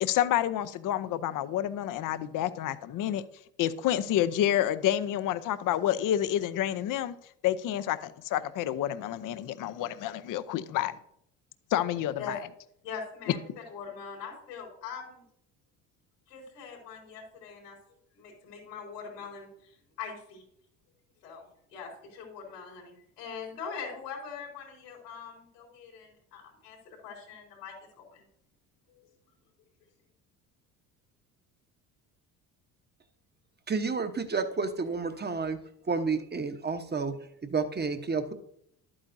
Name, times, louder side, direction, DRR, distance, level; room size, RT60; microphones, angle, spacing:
voice 1, 0.0-3.2 3.6-7.1 7.4-10.9 11.7-12.4, left 11 dB, 45° left, 0.6 m, -29 dB
voice 2, 12.8-13.4 13.7-15.2 16.3-17.8 18.1-20.4 21.2-21.5 21.7-28.2 28.9-29.0, left 6 dB, 90° left, 3.8 m, -42 dB
voice 3, 33.7-35.6 35.9-38.3, right 4 dB, 20° right, 1.0 m, -30 dB
11.5 x 8.8 x 2.7 m
hypercardioid pair, 60°, 46 cm